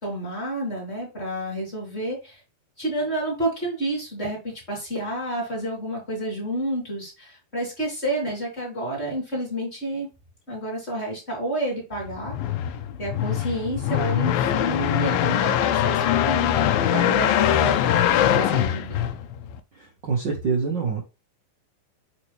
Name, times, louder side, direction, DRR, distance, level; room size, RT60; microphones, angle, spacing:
voice 1, 0.0-2.4 2.8-10.1 10.5-12.3 13.0-19.0, right 1 dB, 20° left, -2 dB, 3.2 m, -30 dB
sound 1, 12.0-19.6, left 10 dB, 90° left, 2.5 m, -22 dB
voice 2, 19.7-21.0, right 5 dB, 70° right, 1 dB, 1.0 m, -26 dB
8.4 x 4.4 x 3.3 m, 0.28 s
omnidirectional pair, 4.1 m